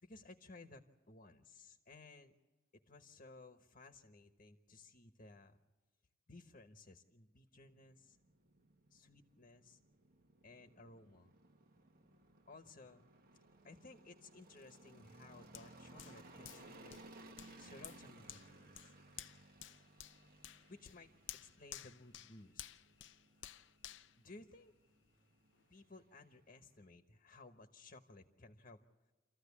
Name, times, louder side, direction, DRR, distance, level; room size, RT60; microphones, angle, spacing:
voice 1, 0.0-2.3 2.9-5.6 6.3-8.2 8.9-9.8 10.4-11.3 12.5-13.1 13.6-17.0 17.6-18.9 20.7-21.1 21.4-22.6 24.2-24.7 25.7-28.8, left 3 dB, 45° left, 7 dB, 1.1 m, -58 dB
sound 1, 7.5-26.9, right 2 dB, 55° right, 1.3 m, -61 dB
Hands, 15.5-25.1 25.5-25.7, left 12 dB, 80° left, 0.6 m, -55 dB
27.0 x 14.5 x 8.5 m, 1.3 s
head